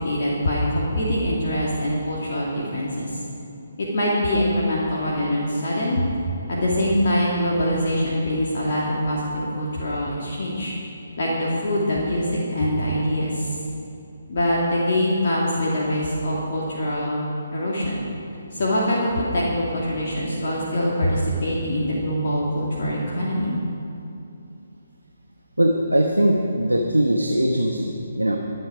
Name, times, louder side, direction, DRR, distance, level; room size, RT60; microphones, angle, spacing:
voice 1, 0.0-3.2 3.8-6.1 6.5-10.7 11.2-13.5 14.3-17.2 17.5-18.0 18.5-23.5, equal, 45° left, -5 dB, 2.3 m, -24 dB
voice 2, 25.6-28.4, right 1 dB, 85° right, 1 dB, 1.1 m, -21 dB
22.5 x 8.1 x 4.9 m, 2.7 s
figure-of-eight pair, 140°, 0 cm